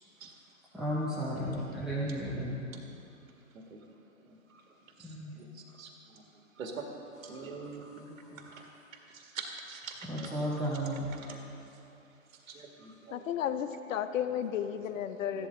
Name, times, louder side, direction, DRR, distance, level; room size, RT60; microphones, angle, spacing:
voice 1, 0.7-2.6 5.0-5.3 10.1-11.1, equal, ahead, -9 dB, 0.7 m, -33 dB
voice 2, 4.2-4.6 5.0-6.2 6.6-6.9 7.2-8.7 9.1-10.3 11.2-11.5 12.5-13.3 14.3-14.5 14.9-15.0 15.3-15.5, right 4 dB, 70° right, 2 dB, 1.7 m, -45 dB
voice 3, 13.1-15.5, left 9 dB, 65° left, 11 dB, 0.7 m, -33 dB
14.5 x 11.5 x 3.8 m, 2.8 s
hypercardioid pair, 145°, 42 cm